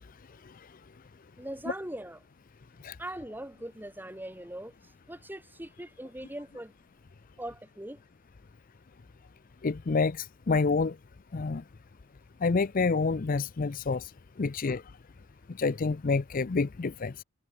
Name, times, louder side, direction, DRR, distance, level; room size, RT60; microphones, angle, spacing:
voice 1, 1.4-2.2 3.0-4.7 5.1-6.7 7.4-8.0, right 1 dB, 10° right, 2.9 m, -40 dB
voice 2, 9.6-10.9 11.3-11.6 12.4-14.1 14.4-14.8 15.6-17.1, left 4 dB, 40° left, 0.5 m, -28 dB
head